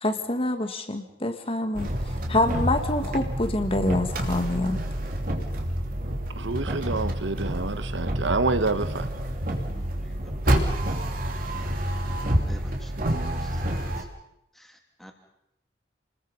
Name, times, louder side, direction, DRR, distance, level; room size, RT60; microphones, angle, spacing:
voice 1, 0.0-4.8, left 1 dB, 30° left, 7 dB, 1.8 m, -26 dB
sound 1, 1.7-14.0, right 1 dB, 50° right, 3.0 m, -28 dB
voice 2, 6.4-9.1, right 3 dB, 80° right, 12 dB, 1.1 m, -27 dB
voice 3, 9.7-10.8 12.5-12.9 13.3-13.6 14.0-14.1 14.6-15.1, equal, ahead, 3 dB, 2.7 m, -48 dB
29.0 x 20.5 x 5.5 m, 0.83 s
head